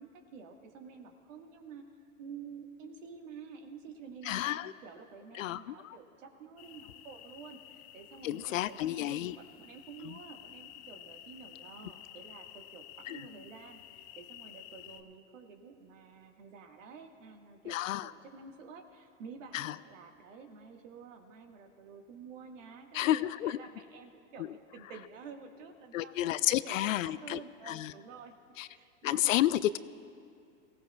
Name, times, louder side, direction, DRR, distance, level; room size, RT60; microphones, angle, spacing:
voice 1, 0.0-28.3 28.7-29.4, right 5 dB, 75° right, 4 dB, 1.7 m, -50 dB
voice 2, 4.3-4.7 5.4-6.0 8.2-9.4 10.0-10.1 13.1-13.2 17.7-18.1 19.5-19.7 22.9-23.6 25.9-27.4 27.7-27.9 28.6-28.7 29.0-29.8, left 14 dB, 85° left, 17 dB, 0.5 m, -31 dB
sound 1, 6.6-15.0, left 12 dB, 55° left, 0.9 m, -52 dB
23.5 x 16.5 x 2.3 m, 2.4 s
hypercardioid pair, 105°, 39 cm